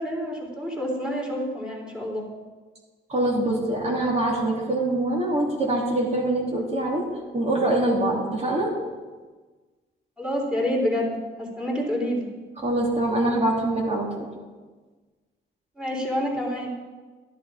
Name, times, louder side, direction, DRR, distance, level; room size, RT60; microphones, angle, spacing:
voice 1, 0.0-2.3 10.2-12.3 15.8-16.7, equal, 5° right, -2 dB, 3.6 m, -28 dB
voice 2, 3.1-7.1 7.3-8.7 12.6-14.3, right 1 dB, 30° right, -2 dB, 3.1 m, -24 dB
12.0 x 10.5 x 5.0 m, 1.3 s
cardioid pair, 90°, 20 cm